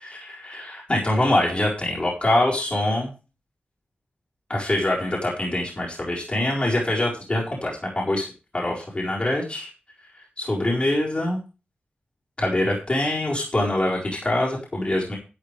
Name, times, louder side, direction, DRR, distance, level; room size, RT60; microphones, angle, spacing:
voice 1, 0.0-3.1 4.5-8.3 8.5-9.7 10.4-11.4 12.4-15.2, left 1 dB, 30° left, -4 dB, 4.5 m, -24 dB
12.0 x 9.8 x 3.4 m, 0.32 s
wide cardioid pair, 85°, 4 cm